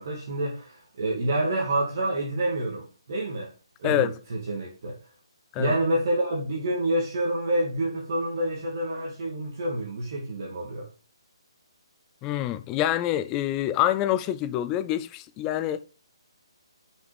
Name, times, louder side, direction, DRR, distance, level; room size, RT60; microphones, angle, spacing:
voice 1, 0.0-3.5 3.8-5.0 5.6-10.9, right 1 dB, 35° right, 2.3 m, -28 dB
voice 2, 12.2-15.8, left 12 dB, 10° left, 0.3 m, -26 dB
7.9 x 5.9 x 5.2 m
hypercardioid pair, 175°, 3 cm